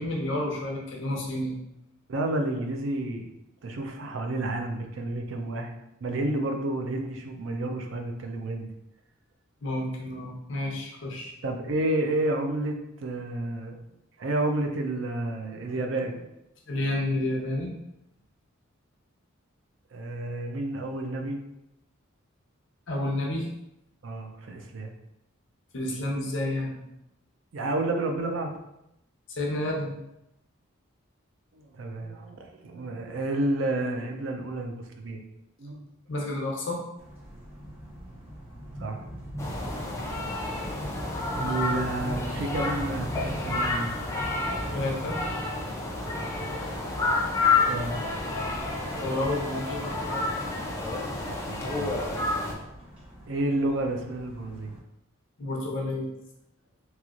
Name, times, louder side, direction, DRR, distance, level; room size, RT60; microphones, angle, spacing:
voice 1, 0.0-1.5 9.6-11.3 16.7-17.7 22.9-23.5 25.7-26.8 29.4-29.9 36.1-36.8 44.7-45.2 49.0-50.3 55.4-56.1, left 1 dB, 60° left, -1 dB, 0.7 m, -30 dB
voice 2, 2.1-3.3 3.6-5.7 6.0-8.7 11.4-13.8 14.2-16.3 19.9-21.4 24.0-24.9 27.5-28.5 31.5-35.2 35.6-35.8 38.8-39.0 41.3-43.9 47.7-48.0 51.3-52.0 53.3-54.7, right 2 dB, 60° right, 4 dB, 0.4 m, -30 dB
sound 1, 37.0-54.8, equal, 25° right, 0.7 m, -41 dB
sound 2, 39.4-52.5, left 3 dB, 15° left, 0.3 m, -30 dB
3.0 x 2.9 x 2.4 m, 0.84 s
head